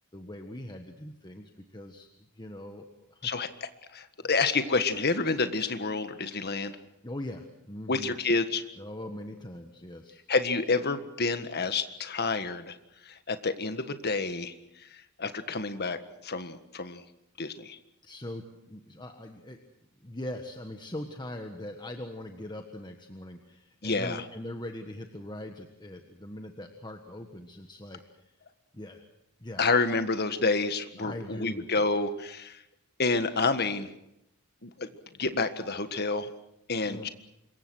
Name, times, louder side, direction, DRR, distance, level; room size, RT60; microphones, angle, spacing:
voice 1, 0.1-2.1 2.4-3.3 7.0-8.1 8.8-10.2 18.0-19.6 20.0-28.3 28.7-29.1 29.4-29.7 31.0-31.7 36.8-37.1, left 1 dB, 20° left, 5 dB, 1.5 m, -41 dB
voice 2, 3.9-6.7 7.9-8.6 10.3-12.7 13.0-14.9 15.2-16.0 16.2-17.0 17.4-17.8 23.8-24.2 29.6-32.6 33.0-33.9 34.6-34.9 35.2-36.3 36.7-37.1, left 3 dB, 45° left, 10 dB, 1.7 m, -29 dB
26.5 x 22.5 x 6.4 m, 0.83 s
head